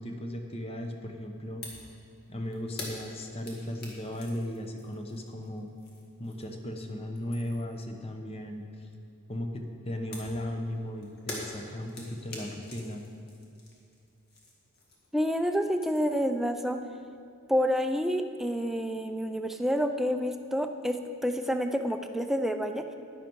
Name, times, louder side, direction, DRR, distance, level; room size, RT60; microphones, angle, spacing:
voice 1, 0.0-1.6 2.3-5.7 6.2-8.9 9.3-13.0, left 1 dB, 30° left, 4 dB, 0.8 m, -36 dB
sound 1, 1.6-1.9 2.2-6.7 7.0-7.8 10.1-15.2 15.5-16.3, left 2 dB, 50° left, 1.9 m, -45 dB
voice 2, 15.1-16.8 17.5-22.8, equal, ahead, 6 dB, 0.4 m, -28 dB
11.0 x 10.5 x 4.6 m, 2.5 s
head